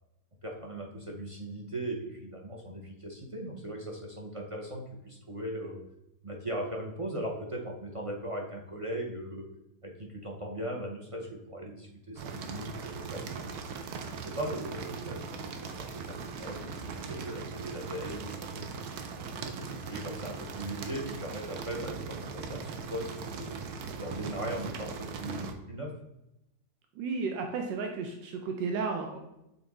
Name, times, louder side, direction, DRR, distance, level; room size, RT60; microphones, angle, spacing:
voice 1, 0.4-5.8 6.2-9.4 9.8-13.5 14.1-18.6 19.4-23.6 24.0-25.9, right 1 dB, 50° right, -1 dB, 0.3 m, -39 dB
sound 1, 12.1-25.5, right 5 dB, 65° right, 1.1 m, -40 dB
voice 2, 27.0-29.2, right 4 dB, 85° right, 3 dB, 1.4 m, -33 dB
6.7 x 3.9 x 3.5 m, 0.88 s
omnidirectional pair, 1.9 m